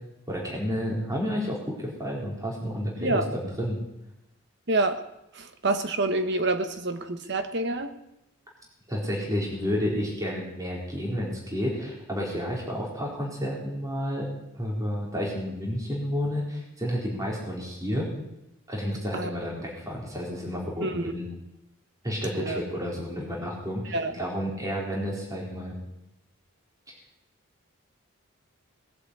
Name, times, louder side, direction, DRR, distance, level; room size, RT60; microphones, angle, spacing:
voice 1, 0.3-3.8 8.9-14.3 14.5-18.1 18.7-21.3 22.0-25.7, equal, 15° right, -3 dB, 4.1 m, -31 dB
voice 2, 4.7-5.0 5.3-7.9 19.1-19.3 20.8-21.0 22.4-22.6 23.9-24.1, right 2 dB, 55° right, 7 dB, 1.3 m, -27 dB
20.0 x 8.3 x 8.1 m, 0.88 s
head